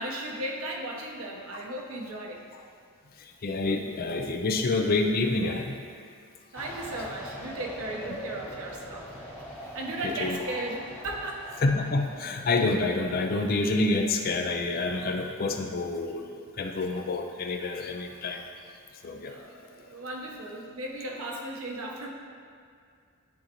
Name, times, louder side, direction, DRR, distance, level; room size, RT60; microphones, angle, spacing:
voice 1, 0.0-2.4 6.5-9.3 9.6-11.6 19.3-22.1, right 1 dB, 65° right, -1 dB, 0.9 m, -36 dB
voice 2, 3.2-5.8 10.2-10.4 11.6-18.4 19.0-19.3, left 2 dB, 40° left, 4 dB, 0.5 m, -28 dB
sound 1, 6.5-13.9, equal, 10° left, 1.0 m, -43 dB
11.0 x 3.9 x 2.9 m, 2.3 s
head